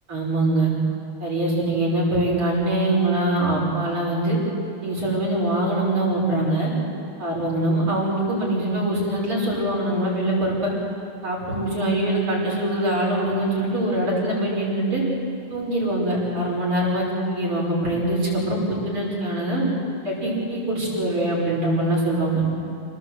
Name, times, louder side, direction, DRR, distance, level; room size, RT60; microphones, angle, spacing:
voice 1, 0.1-0.7 1.2-4.4 4.8-6.7 7.2-10.7 11.2-15.0 15.5-19.6 20.0-22.4, right 1 dB, 85° right, -4 dB, 6.7 m, -23 dB
27.5 x 18.5 x 8.0 m, 2.7 s
omnidirectional pair, 2.3 m